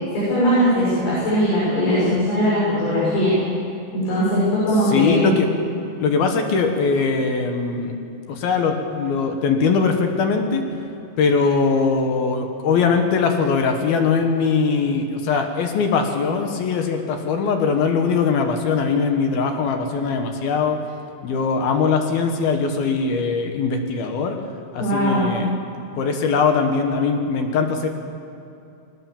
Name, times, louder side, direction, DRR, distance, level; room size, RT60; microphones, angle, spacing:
voice 1, 0.1-3.3 3.9-5.3 24.8-25.3, equal, 80° left, -9 dB, 9.3 m, -20 dB
voice 2, 4.8-5.5 6.0-8.0 8.3-10.6 11.2-20.8 21.2-24.4 24.7-25.5 26.0-27.9, left 5 dB, 65° left, 4 dB, 2.7 m, -21 dB
22.0 x 19.0 x 7.3 m, 2.6 s
omnidirectional pair, 5.9 m